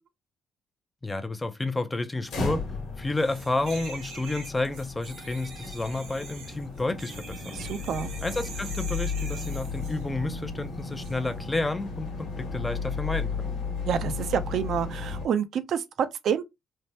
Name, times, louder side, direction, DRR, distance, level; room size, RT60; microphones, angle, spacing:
voice 1, 1.0-2.6 3.0-7.6 8.2-13.5, left 2 dB, 15° left, 0.5 m, -30 dB
sound 1, 2.3-15.3, left 4 dB, 80° left, 1.1 m, -34 dB
sound 2, 3.2-10.0 11.0-11.2, right 5 dB, 90° right, 1.0 m, -44 dB
voice 2, 7.5-8.1 13.9-16.4, right 8 dB, 70° right, 0.4 m, -28 dB
3.3 x 2.0 x 2.7 m
cardioid pair, 90°, 0 cm